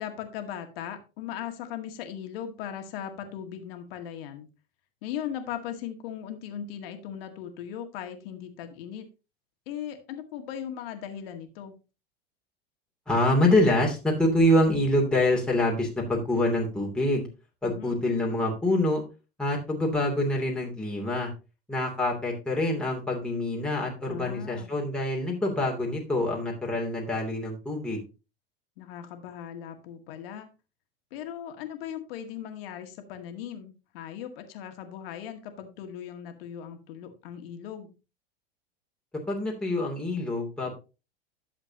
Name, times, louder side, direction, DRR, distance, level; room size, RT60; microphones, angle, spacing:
voice 1, 0.0-4.5 5.0-9.1 9.7-11.8 17.6-18.0 24.1-24.7 28.8-30.6 31.1-37.9, left 9 dB, 65° left, 6 dB, 1.9 m, -38 dB
voice 2, 13.1-17.3 17.6-19.0 19.4-21.3 21.7-28.0 39.3-40.7, left 1 dB, 5° left, -2 dB, 2.8 m, -25 dB
11.5 x 7.4 x 2.8 m, 0.30 s
hypercardioid pair, 95°, 31 cm